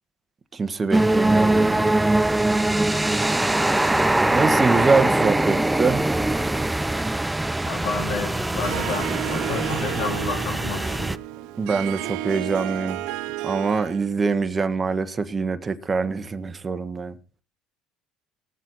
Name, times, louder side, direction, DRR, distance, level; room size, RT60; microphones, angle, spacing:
voice 1, 0.5-2.0 4.3-6.1 11.6-13.0 13.4-17.2, right 4 dB, 25° right, 1.4 m, -24 dB
sound 1, 0.9-11.2, right 2 dB, 10° right, 0.6 m, -22 dB
voice 2, 7.7-11.1, left 5 dB, 80° left, 3.6 m, -31 dB
Harp, 8.6-14.1, right 15 dB, 75° right, 0.8 m, -32 dB
19.5 x 7.4 x 4.1 m
supercardioid pair, 100°, 0 cm